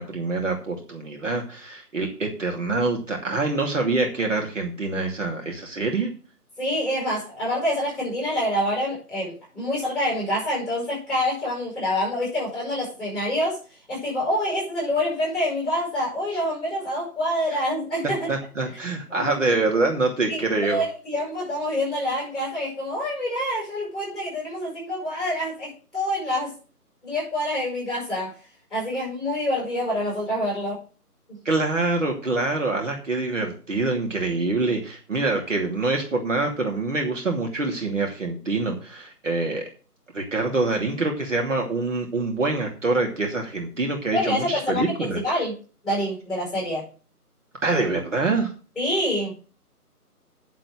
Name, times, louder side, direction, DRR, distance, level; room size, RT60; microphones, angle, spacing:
voice 1, 0.0-6.1 17.5-17.6 18.3-20.8 31.4-39.6 40.1-45.2 47.6-48.5, right 3 dB, 50° right, 1 dB, 2.7 m, -25 dB
voice 2, 6.6-13.6 13.9-18.3 19.1-19.3 20.3-20.4 20.7-26.5 27.0-28.3 28.7-30.8 44.1-45.5 45.8-46.8 48.8-49.3, left 1 dB, ahead, -6 dB, 6.7 m, -26 dB
9.4 x 7.5 x 6.4 m, 0.36 s
figure-of-eight pair, 165°, 47 cm